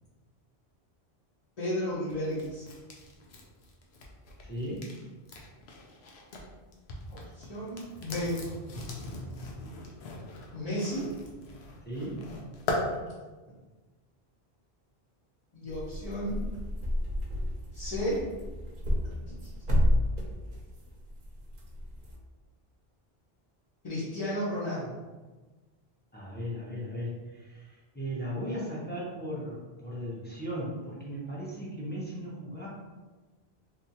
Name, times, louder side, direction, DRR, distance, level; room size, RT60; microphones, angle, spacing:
voice 1, 1.6-2.6 7.1-8.4 10.5-11.1 15.5-16.4 17.7-18.2 19.0-19.2 19.4-19.5 23.8-24.9, equal, 40° left, -10 dB, 1.0 m, -33 dB
sound 1, 2.1-6.5 6.7-12.8, left 2 dB, 80° left, 0.9 m, -40 dB
voice 2, 4.4-4.9 11.9-12.2 26.1-32.7, equal, 10° left, -7 dB, 0.8 m, -37 dB
sound 2, 15.7-22.2, left 1 dB, 55° right, 0.8 m, -31 dB
3.4 x 2.7 x 2.8 m, 1.3 s
omnidirectional pair, 1.1 m